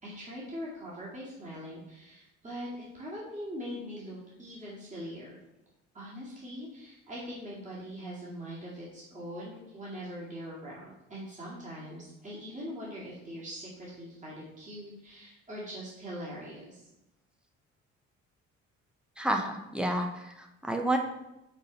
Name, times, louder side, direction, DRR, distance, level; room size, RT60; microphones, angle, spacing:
voice 1, 0.0-2.7 2.9-5.4 5.9-16.8, equal, 20° right, -6 dB, 2.2 m, -42 dB
voice 2, 19.2-21.0, right 1 dB, ahead, 3 dB, 0.9 m, -30 dB
5.3 x 4.0 x 5.3 m, 0.91 s
figure-of-eight pair, 45°, 38 cm